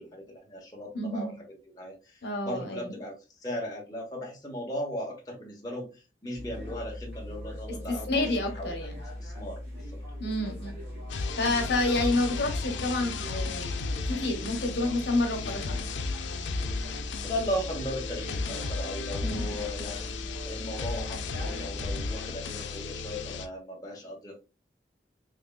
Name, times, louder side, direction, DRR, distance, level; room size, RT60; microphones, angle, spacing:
voice 1, 0.0-1.3 1.7-8.7 9.2-10.0 17.2-20.1 20.4-24.4, equal, 20° left, -2 dB, 0.9 m, -37 dB
voice 2, 0.9-1.3 2.2-3.0 7.9-9.0 10.2-10.7 11.4-13.7 14.1-15.8 19.2-19.6, left 2 dB, 70° left, 3 dB, 1.0 m, -29 dB
sound 1, 6.3-21.8, left 1 dB, 60° right, 1.8 m, -40 dB
sound 2, 11.1-23.5, left 4 dB, 90° left, 0.4 m, -35 dB
3.6 x 3.1 x 2.2 m, 0.30 s
head